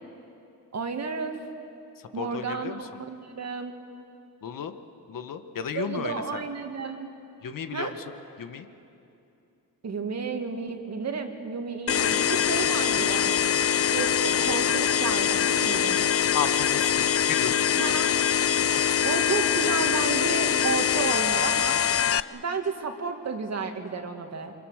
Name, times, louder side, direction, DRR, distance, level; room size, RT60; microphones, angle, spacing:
voice 1, 0.7-1.4 2.1-3.7 5.7-7.1 7.7-7.9 9.8-13.4 13.9-16.1 17.8-18.2 19.0-21.8 22.3-24.5, right 5 dB, 40° right, 5 dB, 2.1 m, -32 dB
voice 2, 2.1-3.0 4.4-4.7 5.1-6.4 7.4-8.0 8.4-8.7 16.3-17.8, left 7 dB, 55° left, 8 dB, 1.4 m, -33 dB
sound 1, 11.9-22.2, left 8 dB, 35° left, 0.5 m, -23 dB
28.0 x 25.0 x 6.5 m, 2.6 s
cardioid pair, 120°, 39 cm